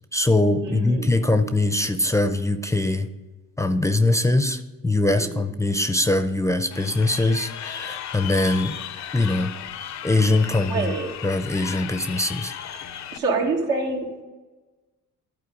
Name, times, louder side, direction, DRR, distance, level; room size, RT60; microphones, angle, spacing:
voice 1, 0.1-3.1 3.6-8.8 9.1-9.5 10.0-10.9 11.2-12.5, left 2 dB, 10° left, 9 dB, 0.5 m, -22 dB
voice 2, 0.6-1.1 5.2-5.5 10.6-11.1 13.1-14.2, right 3 dB, 80° right, -1 dB, 2.0 m, -26 dB
Crowd, 6.7-13.2, left 10 dB, 65° left, 0.6 m, -35 dB
11.5 x 4.3 x 5.2 m, 1.2 s
cardioid pair, 90°, 30 cm